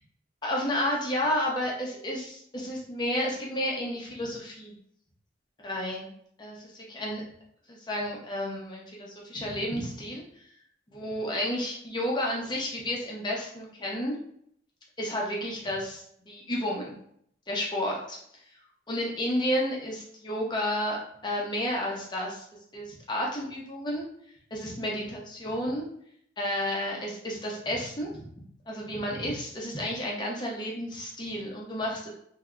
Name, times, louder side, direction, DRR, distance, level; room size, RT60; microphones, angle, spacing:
voice 1, 0.4-4.7 5.6-6.1 6.4-7.2 7.7-10.2 10.9-14.2 15.0-17.0 17.5-18.2 18.9-22.4 22.7-24.1 24.5-25.9 26.4-32.1, left 1 dB, 25° left, -2 dB, 0.7 m, -31 dB
3.4 x 2.7 x 2.4 m, 0.67 s
head